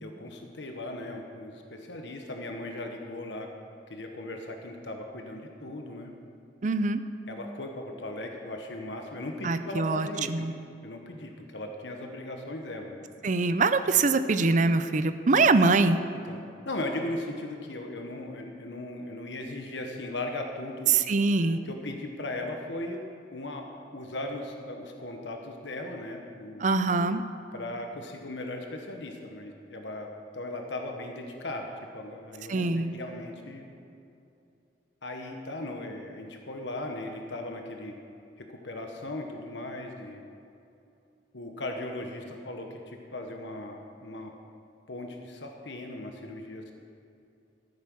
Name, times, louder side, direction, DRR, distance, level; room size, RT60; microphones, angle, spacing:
voice 1, 0.0-3.5 3.9-6.1 7.3-10.5 10.8-13.1 16.2-16.4 16.6-20.9 21.5-23.0 23.3-23.7 23.9-26.7 27.5-33.6 35.0-37.9 38.4-40.2 41.3-44.3 44.9-46.8, left 1 dB, 90° left, 3 dB, 1.2 m, -38 dB
voice 2, 6.6-7.0 9.4-10.5 13.2-16.0 20.9-21.6 26.6-27.2 32.5-32.9, right 3 dB, 45° right, 11 dB, 0.6 m, -24 dB
14.0 x 8.8 x 6.2 m, 2.6 s
head